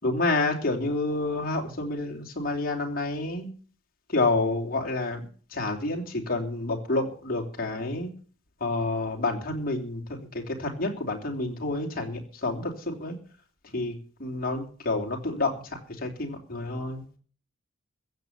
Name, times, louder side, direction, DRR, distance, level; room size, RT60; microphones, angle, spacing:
voice 1, 0.0-3.5 4.1-8.1 8.6-13.2 13.7-13.9 14.2-15.5 16.0-17.0, left 2 dB, 45° left, 1 dB, 3.2 m, -29 dB
15.5 x 7.4 x 8.2 m, 0.43 s
head